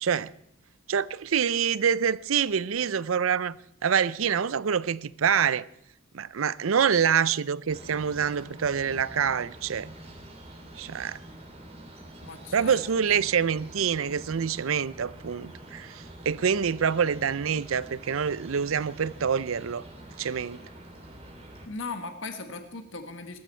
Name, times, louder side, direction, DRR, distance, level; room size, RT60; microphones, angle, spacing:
voice 1, 0.0-0.3 0.9-3.6 3.8-5.6 6.1-9.9 10.8-11.2 12.5-19.8 20.2-20.6, right 7 dB, 90° right, 0.5 m, -26 dB
sound 1, 7.7-21.7, right 1 dB, 30° right, 3.1 m, -46 dB
voice 2, 12.2-12.8 13.1-13.2 21.7-23.4, left 3 dB, 65° left, 1.7 m, -38 dB
20.5 x 13.5 x 4.5 m
head